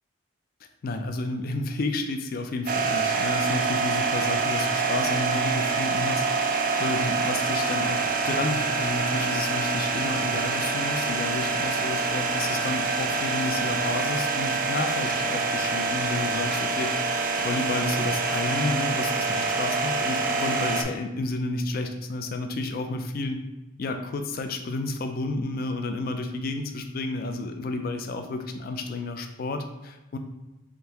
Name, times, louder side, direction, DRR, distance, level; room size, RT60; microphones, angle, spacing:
voice 1, 0.8-23.4 23.8-30.2, left 2 dB, 45° left, 6 dB, 0.3 m, -31 dB
sound 1, 2.7-20.8, right 4 dB, 40° right, 0.3 m, -26 dB
3.7 x 3.4 x 2.9 m, 1.0 s
head